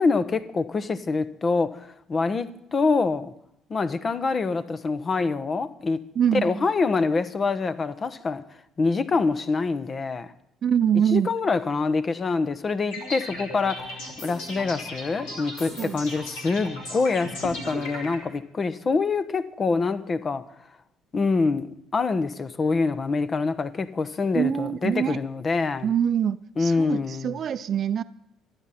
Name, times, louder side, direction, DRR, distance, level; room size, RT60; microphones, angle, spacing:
voice 1, 0.0-3.3 3.7-6.0 6.4-8.4 8.8-10.3 11.1-13.9 14.2-20.4 21.1-25.9 26.6-27.4, left 4 dB, 35° left, 1.1 m, -25 dB
voice 2, 6.2-6.7 10.6-11.3 15.8-16.0 24.3-25.2 25.8-28.0, right 8 dB, 50° right, 0.7 m, -24 dB
sound 1, 12.9-18.2, left 1 dB, 75° left, 3.3 m, -36 dB
26.5 x 9.8 x 4.2 m
hypercardioid pair, 55°, 0 cm